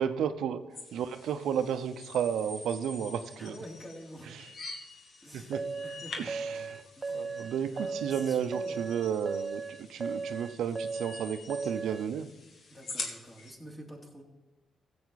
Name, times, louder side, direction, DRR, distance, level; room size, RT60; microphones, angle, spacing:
voice 1, 0.0-3.5 5.3-5.7 6.2-6.8 7.1-12.3, right 8 dB, 80° right, 10 dB, 0.7 m, -32 dB
sound 1, 0.7-13.5, left 3 dB, 65° left, 1.8 m, -46 dB
voice 2, 3.4-4.3 5.2-6.4 7.0-8.8 12.7-14.2, equal, 15° left, -1 dB, 3.0 m, -48 dB
sound 2, 5.5-12.1, right 4 dB, 30° right, 0.5 m, -37 dB
15.5 x 7.8 x 4.1 m, 1.1 s
cardioid pair, 80°, 0 cm